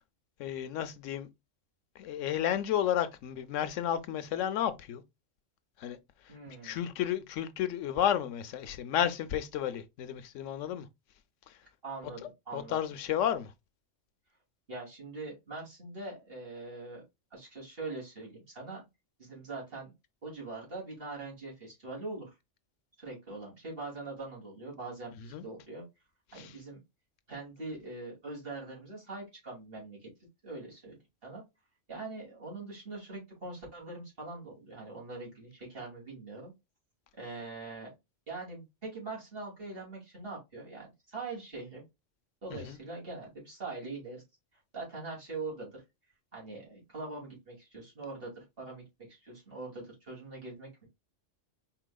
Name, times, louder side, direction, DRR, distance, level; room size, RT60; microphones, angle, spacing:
voice 1, 0.4-1.3 2.0-5.0 5.8-6.0 6.5-10.9 11.5-11.6 12.5-13.5 25.3-25.4 26.3-26.5 42.5-42.8, left 10 dB, 85° left, 1.0 m, -32 dB
voice 2, 6.3-6.8 11.8-12.2 12.5-12.8 14.7-17.0 17.3-18.8 19.2-19.9 20.2-22.3 23.0-25.8 26.3-26.8 27.3-30.1 30.4-31.0 31.2-31.4 31.9-36.5 37.2-37.9 38.3-41.8 42.4-44.2 44.7-45.8 46.3-50.9, right 3 dB, 50° right, 2.8 m, -42 dB
4.8 x 4.1 x 2.2 m
omnidirectional pair, 1.3 m